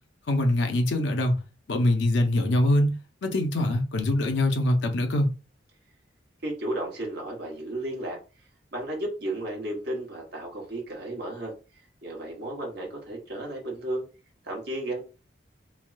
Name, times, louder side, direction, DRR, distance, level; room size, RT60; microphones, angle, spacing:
voice 1, 0.3-1.4 1.7-5.3, left 1 dB, 80° left, 0.5 m, -23 dB
voice 2, 6.4-8.2 8.7-11.5 12.0-14.0 14.4-15.0, right 1 dB, 60° right, 1.2 m, -33 dB
3.3 x 2.2 x 2.5 m
head